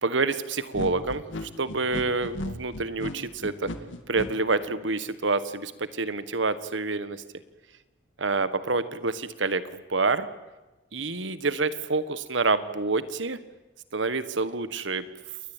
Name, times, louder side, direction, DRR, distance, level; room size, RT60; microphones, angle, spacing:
voice 1, 0.0-3.7 4.1-7.2 8.2-10.3 10.9-13.4 13.9-15.0, right 3 dB, 80° right, 13 dB, 1.5 m, -27 dB
sound 1, 0.7-4.3, left 1 dB, 90° left, 2.4 m, -35 dB
29.0 x 21.5 x 9.1 m, 1.1 s
head